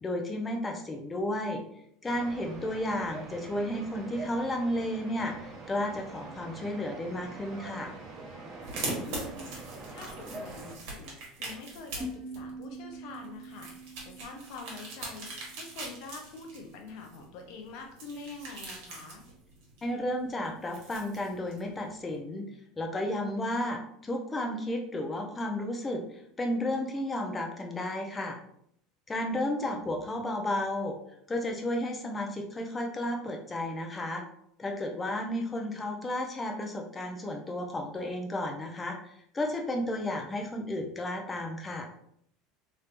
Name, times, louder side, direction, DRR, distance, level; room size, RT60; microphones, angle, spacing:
voice 1, 0.0-1.6 2.0-7.9 19.8-22.4 22.8-26.0 26.4-28.4 29.1-31.0 31.3-34.2 34.6-41.9, left 1 dB, 20° left, 2 dB, 0.7 m, -33 dB
sound 1, 2.1-10.8, right 3 dB, 50° right, 0.9 m, -44 dB
sound 2, 8.6-22.1, right 2 dB, 65° right, 1.2 m, -42 dB
voice 2, 9.0-19.3 29.2-29.7 35.1-35.3, left 3 dB, 65° left, 3 dB, 0.7 m, -46 dB
sound 3, 12.0-17.1, right 1 dB, 25° right, 1.2 m, -45 dB
3.1 x 3.1 x 2.5 m, 0.70 s
hypercardioid pair, 80°, 0 cm